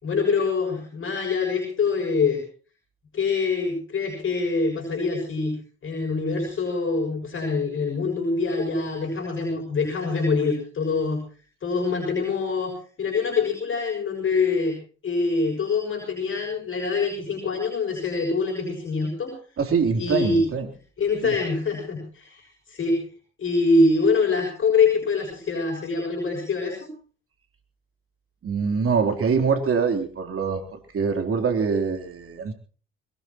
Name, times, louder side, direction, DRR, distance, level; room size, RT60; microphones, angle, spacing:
voice 1, 0.0-2.4 3.1-11.2 11.6-12.7 13.0-14.8 15.0-19.3 20.0-20.4 21.0-23.0 23.4-26.9, left 4 dB, 45° left, 0 dB, 6.6 m, -24 dB
voice 2, 19.6-20.7 21.2-21.3 28.4-32.5, right 5 dB, 50° right, 4 dB, 3.5 m, -24 dB
22.0 x 19.0 x 3.0 m, 0.40 s
hypercardioid pair, 60°, 29 cm